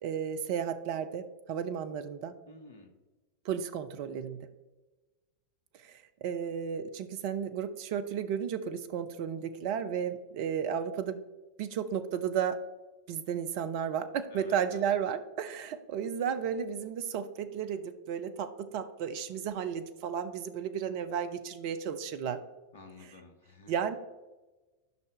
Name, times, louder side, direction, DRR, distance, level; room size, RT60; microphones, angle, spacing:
voice 1, 0.0-2.3 3.4-4.5 5.8-11.2 11.6-12.6 13.1-22.4 23.7-24.0, right 8 dB, 45° right, 10 dB, 0.7 m, -33 dB
voice 2, 2.4-2.9 14.3-15.0 22.7-23.7, left 3 dB, 60° left, 5 dB, 1.5 m, -51 dB
12.0 x 5.8 x 3.4 m, 1.1 s
figure-of-eight pair, 90°, 0 cm